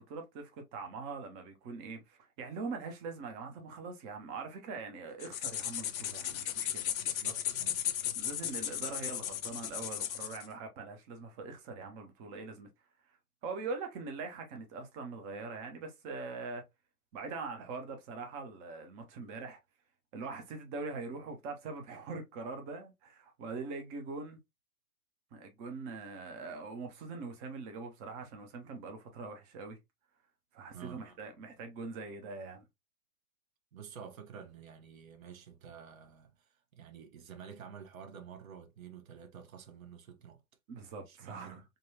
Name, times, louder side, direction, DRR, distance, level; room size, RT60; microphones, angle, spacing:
voice 1, 0.0-6.8 8.1-12.7 13.1-13.2 13.4-16.6 17.1-19.6 20.1-24.4 25.3-29.8 30.5-32.6 40.7-41.6, right 4 dB, 15° right, 0.4 m, -42 dB
sound 1, 5.2-10.5, left 10 dB, 65° left, 0.6 m, -36 dB
voice 2, 7.0-7.8 30.7-31.0 33.7-40.4 41.1-41.6, right 7 dB, 65° right, 0.9 m, -50 dB
3.8 x 2.1 x 2.7 m
figure-of-eight pair, 110°, 45 cm